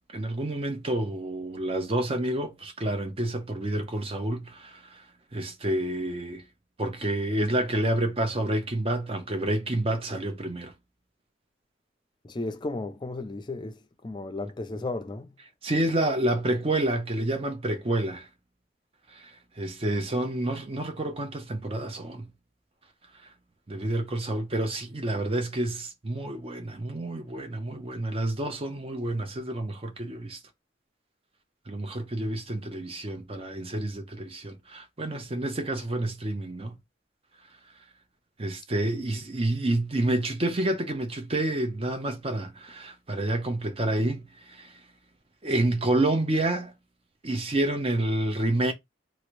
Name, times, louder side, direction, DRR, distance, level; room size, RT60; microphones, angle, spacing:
voice 1, 0.1-5.0 5.3-6.4 6.8-10.7 15.6-18.3 19.1-22.3 23.7-30.4 31.7-36.8 38.4-44.7 45.4-46.7 47.2-48.7, right 1 dB, 30° right, 0.6 m, -29 dB
voice 2, 12.2-15.3, left 2 dB, 25° left, 0.4 m, -34 dB
3.0 x 2.5 x 3.0 m
head